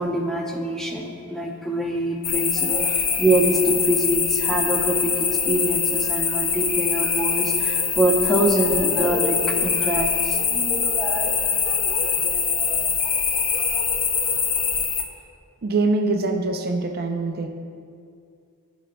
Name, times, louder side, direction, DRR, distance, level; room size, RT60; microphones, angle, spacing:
voice 1, 0.0-12.9, right 1 dB, ahead, -1 dB, 0.7 m, -25 dB
sound 1, 2.2-15.0, left 6 dB, 40° left, 0.6 m, -23 dB
voice 2, 15.6-17.5, right 3 dB, 45° right, 4 dB, 0.5 m, -23 dB
15.0 x 5.2 x 2.2 m, 2.3 s
head